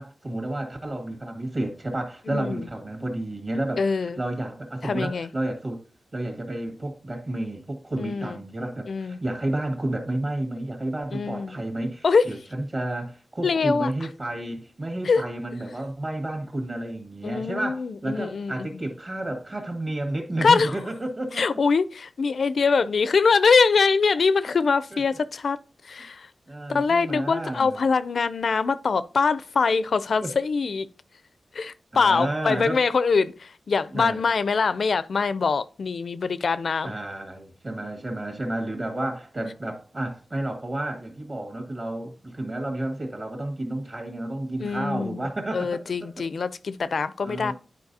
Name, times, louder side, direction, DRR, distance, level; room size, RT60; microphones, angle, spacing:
voice 1, 0.0-5.8 6.1-21.4 24.9-25.0 26.5-27.8 30.2-30.4 31.9-32.8 33.9-34.2 36.8-45.8 46.2-46.3 47.2-47.5, right 1 dB, 40° right, 1.8 m, -31 dB
voice 2, 2.3-2.7 3.8-4.2 4.8-5.3 8.0-8.4 8.9-9.2 11.1-11.6 12.0-12.3 13.4-13.9 15.0-15.2 17.2-18.8 20.4-20.8 21.3-25.6 25.8-26.3 26.7-30.9 31.5-36.9 44.6-47.5, left 5 dB, 70° left, 0.4 m, -23 dB
10.5 x 4.6 x 2.7 m
wide cardioid pair, 95°, 0 cm